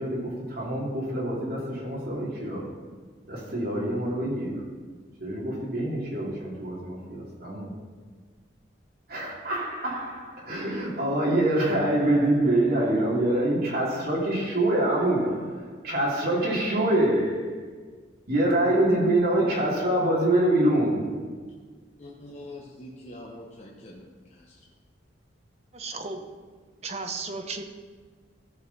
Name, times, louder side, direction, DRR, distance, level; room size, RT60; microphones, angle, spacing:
voice 1, 0.0-2.7 3.3-4.7 5.2-7.7 9.1-17.8 18.3-21.4, right 1 dB, 50° right, -4 dB, 2.9 m, -25 dB
voice 2, 22.0-24.7, left 1 dB, 35° left, -4 dB, 1.0 m, -44 dB
voice 3, 25.7-26.3 26.8-27.6, right 3 dB, 35° right, 5 dB, 0.9 m, -34 dB
15.0 x 6.5 x 4.1 m, 1.5 s
head